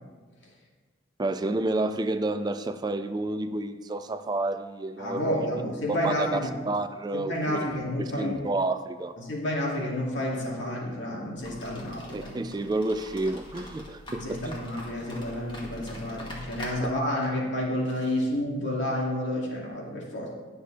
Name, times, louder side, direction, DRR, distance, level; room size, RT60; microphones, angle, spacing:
voice 1, 1.2-5.5 5.9-6.4 6.7-7.6 8.0-9.1 12.1-14.6, right 2 dB, 20° right, 10 dB, 0.3 m, -30 dB
voice 2, 5.0-6.5 7.1-8.4 9.2-12.3 14.1-20.3, left 1 dB, 65° left, -3 dB, 2.5 m, -30 dB
sound 1, 11.4-16.7, left 1 dB, 25° left, 2.0 m, -43 dB
20.0 x 6.6 x 3.4 m, 1.4 s
head